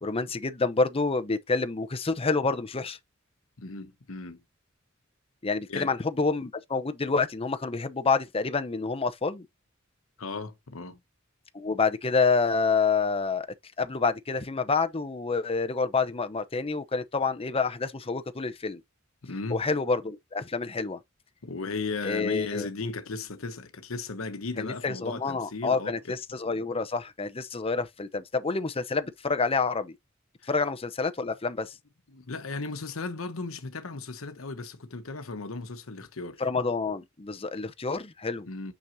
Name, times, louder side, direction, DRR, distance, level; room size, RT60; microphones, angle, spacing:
voice 1, 0.0-3.0 5.4-9.5 11.5-13.5 13.8-18.8 19.5-21.0 22.0-22.7 24.6-30.0 30.5-31.7 36.4-38.5, left 4 dB, 30° left, 0.7 m, -28 dB
voice 2, 3.6-4.4 5.7-5.9 10.2-11.0 19.2-19.6 21.4-26.2 30.4-30.5 32.1-36.4 38.5-38.7, left 3 dB, 85° left, 1.0 m, -36 dB
6.2 x 5.9 x 2.7 m
head